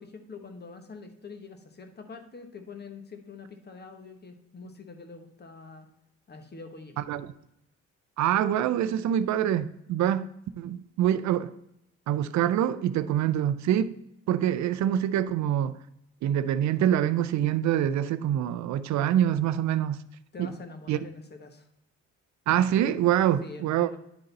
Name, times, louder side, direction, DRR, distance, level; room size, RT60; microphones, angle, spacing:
voice 1, 0.0-5.9 6.3-7.0 20.3-21.7 23.4-24.0, left 4 dB, 35° left, 7 dB, 1.1 m, -45 dB
voice 2, 7.0-7.3 8.2-10.3 10.6-11.5 12.1-13.9 14.3-15.8 16.2-20.0 20.4-20.5 20.9-21.0 22.5-24.0, right 10 dB, 70° right, 13 dB, 0.5 m, -25 dB
9.9 x 3.9 x 3.9 m, 0.80 s
cardioid pair, 90°, 30 cm